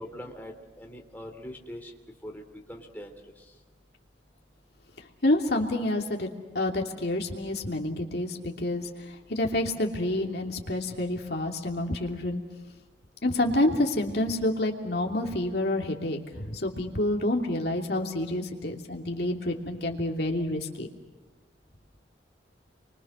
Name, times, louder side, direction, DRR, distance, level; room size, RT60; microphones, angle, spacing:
voice 1, 0.0-1.9 2.2-3.1, equal, 10° left, 1 dB, 3.2 m, -42 dB
voice 2, 5.2-6.3 6.5-12.4 13.2-20.9, left 1 dB, 60° left, 1 dB, 3.0 m, -28 dB
30.0 x 24.5 x 6.4 m, 1.2 s
head